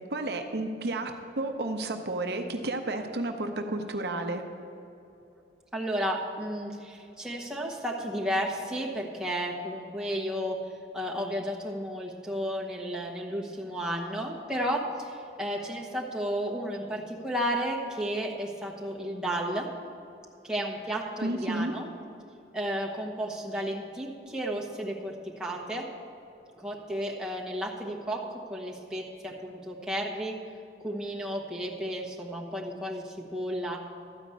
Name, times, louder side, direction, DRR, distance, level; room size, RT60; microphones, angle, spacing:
voice 1, 0.1-4.4 21.2-21.7, right 2 dB, 60° right, 5 dB, 0.8 m, -31 dB
voice 2, 5.7-19.7 20.4-21.9 22.5-25.8 26.6-30.3 30.8-33.8, equal, 5° right, -4 dB, 1.2 m, -33 dB
13.0 x 5.1 x 8.3 m, 2.8 s
head